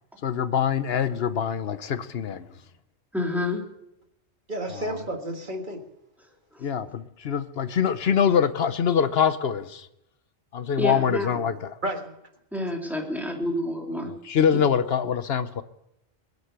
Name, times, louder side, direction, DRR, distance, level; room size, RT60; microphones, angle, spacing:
voice 1, 0.2-2.6 4.7-5.1 6.6-9.9 10.5-11.8 14.1-15.6, left 7 dB, 65° left, 1.0 m, -24 dB
voice 2, 3.1-3.7 6.5-6.6 10.8-11.3 12.5-14.1, left 1 dB, ahead, 3.0 m, -28 dB
voice 3, 4.5-5.8 11.8-12.1, right 1 dB, 45° right, 1.7 m, -31 dB
22.5 x 8.2 x 6.8 m
omnidirectional pair, 1.2 m